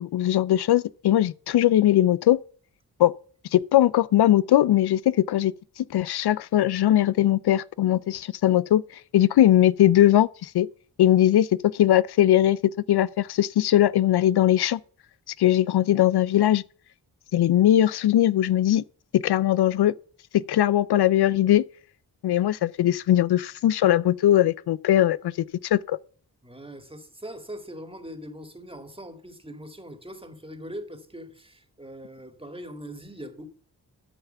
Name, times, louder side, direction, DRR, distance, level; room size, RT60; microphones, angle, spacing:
voice 1, 0.0-2.4 3.0-3.1 3.5-8.8 9.1-10.7 11.0-12.6 12.9-14.8 15.4-16.6 17.3-18.8 19.1-19.9 20.3-21.6 22.2-25.3 25.6-26.0, left 12 dB, 75° left, 0.5 m, -20 dB
voice 2, 26.4-33.5, equal, 15° right, 2.0 m, -41 dB
12.5 x 5.8 x 6.8 m
cardioid pair, 85°, 39 cm